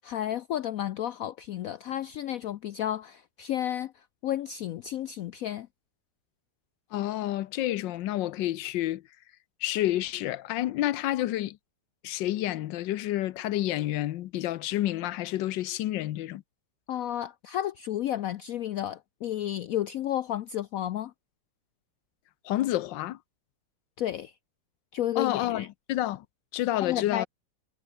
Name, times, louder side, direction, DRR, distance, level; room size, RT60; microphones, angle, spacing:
voice 1, 0.0-5.7 16.9-21.1 24.0-24.3 24.9-25.7 26.8-27.3, left 11 dB, 75° left, 0.8 m, -32 dB
voice 2, 6.9-9.0 9.6-11.6 12.0-16.4 22.4-23.2 25.2-26.2 26.5-27.3, left 14 dB, 90° left, 1.4 m, -29 dB
omnidirectional pair, 1.9 m